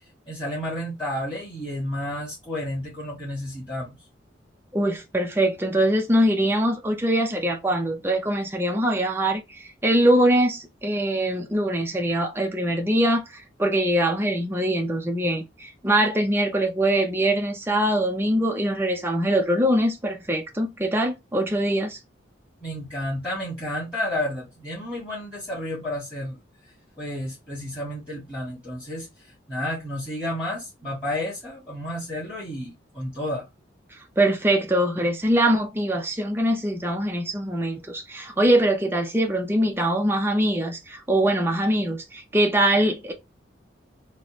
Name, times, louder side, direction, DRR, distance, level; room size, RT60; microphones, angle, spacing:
voice 1, 0.3-4.0 22.6-26.4 27.0-29.1 29.5-33.5, left 1 dB, 10° left, 1.7 m, -31 dB
voice 2, 4.7-22.0 33.9-43.1, right 1 dB, 10° right, 0.5 m, -23 dB
4.0 x 2.2 x 2.9 m
head